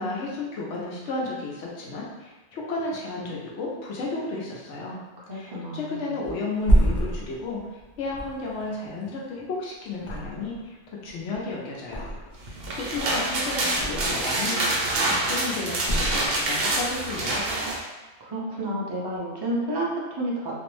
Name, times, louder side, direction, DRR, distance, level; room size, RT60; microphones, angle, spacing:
voice 1, 0.0-5.0 5.3-7.7 8.0-10.8 11.0-12.1 12.5-14.6 15.0-17.5, left 3 dB, 75° left, -3 dB, 0.9 m, -33 dB
voice 2, 5.3-6.1 18.2-20.5, right 1 dB, 40° right, -5 dB, 0.3 m, -30 dB
Thump thud, 6.2-9.5 10.0-10.7 11.0-12.5 12.8-14.4 14.7-15.3 15.8-16.8 17.1-17.3, right 1 dB, 55° left, 0.5 m, -28 dB
sound 1, 12.5-17.8, right 2 dB, 60° right, 0.7 m, -26 dB
2.5 x 2.0 x 3.0 m, 1.2 s
omnidirectional pair, 1.2 m